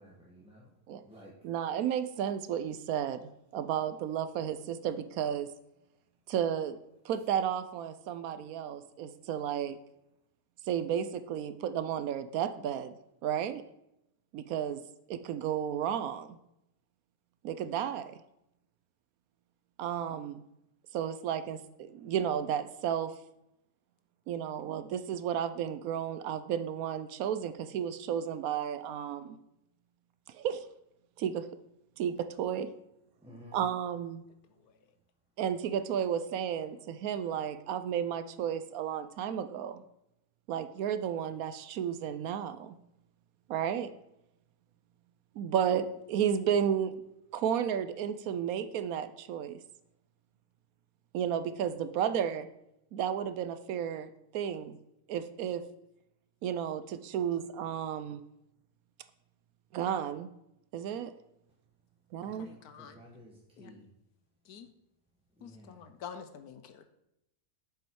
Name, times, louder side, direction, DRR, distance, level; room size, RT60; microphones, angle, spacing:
voice 1, 0.0-0.7 1.0-1.3 33.2-33.6 62.2-63.3 63.6-63.9 65.4-65.8, left 1 dB, 5° right, -5 dB, 1.1 m, -53 dB
voice 2, 1.4-3.2 3.5-5.5 6.3-6.8 7.0-9.8 10.7-12.9 13.2-13.6 14.3-14.8 15.1-16.4 17.4-18.2 19.8-20.4 20.9-23.1 24.3-29.4 30.3-30.6 31.2-31.5 32.0-32.7 33.5-34.2 35.4-39.8 40.5-42.8 43.5-43.9 45.4-47.0 47.3-49.6 51.1-52.5 52.9-54.8 55.1-55.6 56.4-58.2 59.7-60.3 60.7-61.1 62.1-62.5, right 9 dB, 75° right, 11 dB, 1.0 m, -33 dB
voice 3, 62.4-63.0 63.6-63.7 64.5-64.7 65.4-66.8, left 7 dB, 80° left, 9 dB, 1.3 m, -47 dB
7.5 x 7.1 x 4.6 m, 0.84 s
omnidirectional pair, 1.6 m